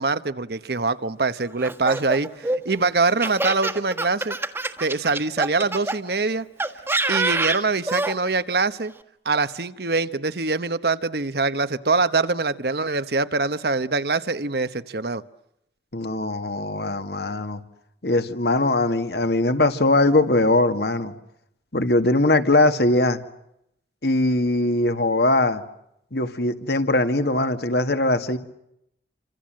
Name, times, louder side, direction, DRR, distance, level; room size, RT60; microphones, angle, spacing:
voice 1, 0.0-4.4 4.8-6.5 7.1-8.9 9.2-15.2, right 3 dB, 60° right, 13 dB, 1.1 m, -24 dB
Laughter, 1.6-6.0 6.6-8.1, right 2 dB, 15° right, 1.5 m, -26 dB
voice 2, 15.9-17.6 18.0-21.1 21.7-23.2 24.0-25.6 26.1-28.4, left 2 dB, 65° left, 8 dB, 2.0 m, -21 dB
29.0 x 26.0 x 7.7 m, 0.80 s
head